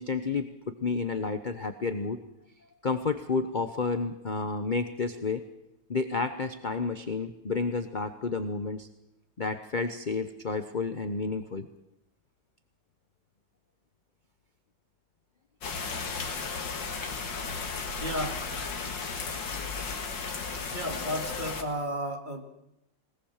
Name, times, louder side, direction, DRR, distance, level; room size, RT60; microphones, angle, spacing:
voice 1, 0.0-2.2 2.8-5.4 5.9-8.9 9.4-11.7, left 4 dB, 35° left, 9 dB, 0.8 m, -31 dB
sound 1, 15.6-21.6, left 4 dB, 75° left, 2.6 m, -34 dB
voice 2, 18.0-18.4 20.2-22.4, equal, 25° right, 3 dB, 2.5 m, -34 dB
21.0 x 19.5 x 7.3 m, 0.84 s
omnidirectional pair, 2.0 m